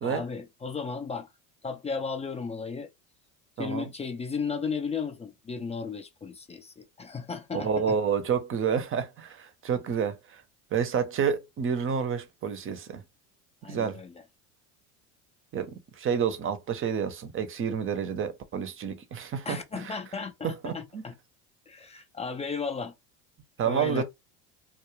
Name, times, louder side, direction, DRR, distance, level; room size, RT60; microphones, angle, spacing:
voice 1, 0.0-1.3 1.6-2.9 3.6-8.0 13.6-14.2 19.5-21.1 21.7-22.9 23.7-24.0, left 5 dB, 15° left, 0.4 m, -35 dB
voice 2, 3.6-3.9 7.5-10.4 10.7-13.0 13.7-14.0 15.5-20.0 20.4-21.0 23.6-24.0, right 7 dB, 30° right, 0.7 m, -29 dB
2.3 x 2.2 x 3.0 m
hypercardioid pair, 85°, 42 cm